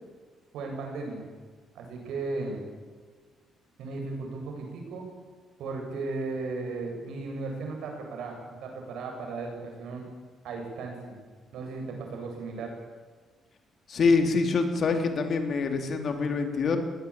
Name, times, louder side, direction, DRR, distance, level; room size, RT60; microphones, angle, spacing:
voice 1, 0.5-1.2 1.7-2.6 3.8-5.1 5.6-10.1 10.4-11.1 11.5-12.7, right 3 dB, 80° right, 2 dB, 7.7 m, -36 dB
voice 2, 13.9-16.8, left 4 dB, 55° left, 5 dB, 3.8 m, -25 dB
20.0 x 20.0 x 8.9 m, 1.5 s
cardioid pair, 90°, 0 cm